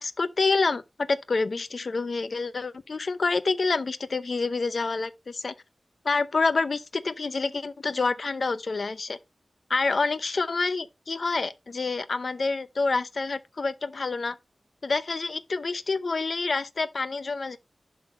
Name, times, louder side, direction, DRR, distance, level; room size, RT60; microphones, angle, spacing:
voice 1, 0.0-5.5 6.0-9.2 9.7-14.4 14.8-17.6, left 3 dB, 60° left, 0.7 m, -27 dB
11.0 x 3.9 x 4.2 m
wide cardioid pair, 100°, 0 cm